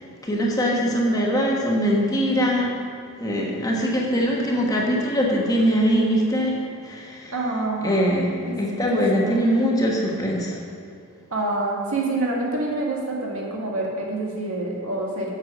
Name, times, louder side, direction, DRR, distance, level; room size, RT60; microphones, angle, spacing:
voice 1, 0.2-2.7 3.2-6.5 6.8-7.3 7.8-8.3 8.6-10.5, equal, 15° left, -3 dB, 1.3 m, -22 dB
voice 2, 7.3-8.1 8.5-8.6 8.9-9.0 9.3-9.4 11.3-15.3, right 2 dB, 65° right, -2 dB, 1.9 m, -26 dB
8.0 x 7.2 x 6.1 m, 2.5 s
head